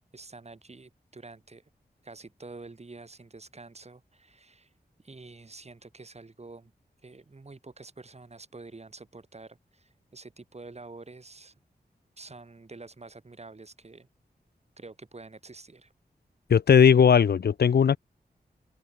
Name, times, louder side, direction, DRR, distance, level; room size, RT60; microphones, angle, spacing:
voice 1, 0.1-1.6 2.0-4.7 5.0-6.7 7.0-11.5 12.2-14.1 14.8-15.9, right 3 dB, 40° right, 4.0 m, -47 dB
voice 2, 16.5-18.0, left 7 dB, 80° left, 0.6 m, -18 dB
open air
wide cardioid pair, 90°, 16 cm